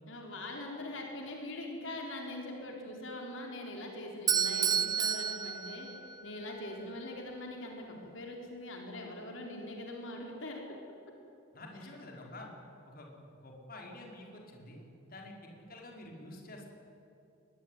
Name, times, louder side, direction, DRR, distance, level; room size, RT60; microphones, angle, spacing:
voice 1, 0.1-5.9 6.2-10.6, left 1 dB, 70° left, 1 dB, 4.0 m, -42 dB
Bell / Doorbell, 4.3-6.4, right 7 dB, 20° right, 0.7 m, -30 dB
voice 2, 11.5-12.5 12.9-13.1 13.4-14.8 15.1-16.7, left 1 dB, 45° left, 0 dB, 4.6 m, -48 dB
22.0 x 21.5 x 9.8 m, 2.9 s
head